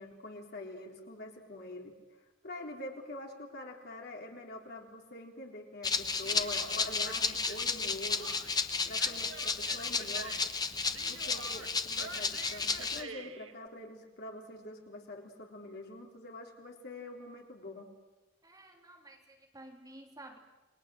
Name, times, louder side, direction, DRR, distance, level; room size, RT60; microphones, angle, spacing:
voice 1, 0.0-1.9 2.4-8.3 8.9-10.4 10.9-17.9, left 1 dB, 50° left, 2 dB, 3.7 m, -45 dB
Rattle (instrument), 5.8-13.0, left 4 dB, 20° left, 1.1 m, -33 dB
Human voice, 6.2-13.5, right 4 dB, 75° right, 1.8 m, -48 dB
voice 2, 18.4-20.4, right 1 dB, 20° right, 1 dB, 3.2 m, -52 dB
29.0 x 21.5 x 7.7 m, 1.1 s
head